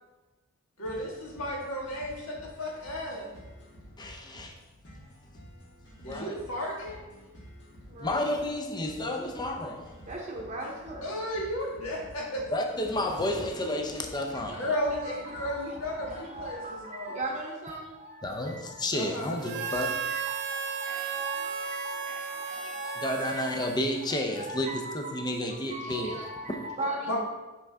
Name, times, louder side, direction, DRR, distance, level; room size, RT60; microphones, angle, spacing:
voice 1, 0.8-3.3 6.0-7.0 11.0-12.4 14.5-17.2 18.9-19.3 27.1-27.2, left 1 dB, 75° left, -3 dB, 1.8 m, -34 dB
sound 1, 0.8-16.8, equal, 55° left, 1.6 m, -51 dB
voice 2, 4.0-4.5 6.0-6.3 8.0-10.0 12.5-14.7 18.2-19.9 23.0-24.7 24.9-26.2, left 1 dB, 20° left, 3 dB, 0.6 m, -31 dB
voice 3, 7.9-8.2 10.1-11.1 14.5-18.8 19.3-23.6 24.1-27.2, right 2 dB, 35° right, -1 dB, 0.9 m, -39 dB
Harmonica, 19.4-24.3, right 6 dB, 55° right, 0.4 m, -34 dB
5.9 x 5.5 x 3.5 m, 1.1 s
head